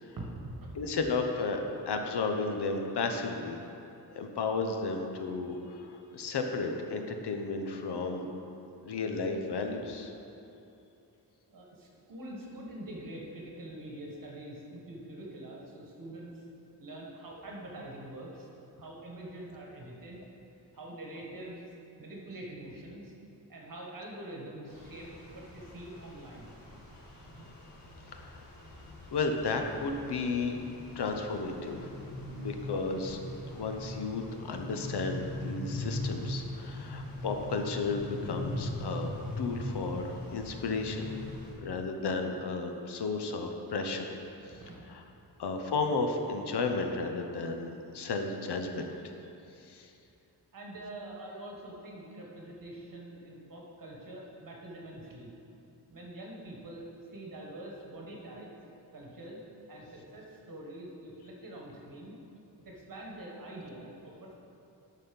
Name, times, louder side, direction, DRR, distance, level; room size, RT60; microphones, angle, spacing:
voice 1, 0.2-1.1 9.7-9.8 11.5-16.4 16.8-18.5 18.8-20.2 20.8-23.1 23.5-26.6 27.3-27.5 44.4-45.2 50.5-55.3 55.9-58.5 58.9-59.4 59.7-62.1 62.6-64.3, right 1 dB, 55° right, -2 dB, 1.5 m, -45 dB
voice 2, 0.7-1.6 1.9-3.6 4.1-8.3 8.8-10.1 28.1-28.4 29.1-30.6 31.0-31.9 32.3-33.2 33.5-41.1 41.6-44.1 44.5-44.6 44.9-45.0 45.4-49.1 49.6-49.9, left 4 dB, 75° left, 4 dB, 0.8 m, -33 dB
sound 1, 24.7-41.5, left 1 dB, 55° left, 1.6 m, -41 dB
11.5 x 4.2 x 5.3 m, 2.8 s
wide cardioid pair, 180°, 41 cm